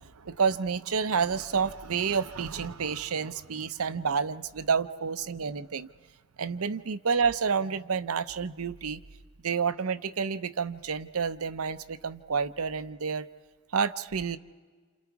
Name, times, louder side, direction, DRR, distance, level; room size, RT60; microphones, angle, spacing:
voice 1, 0.0-5.9 6.4-9.0 9.4-13.3 13.7-14.4, right 6 dB, 75° right, 12 dB, 0.7 m, -29 dB
29.5 x 28.5 x 4.7 m, 1.5 s
head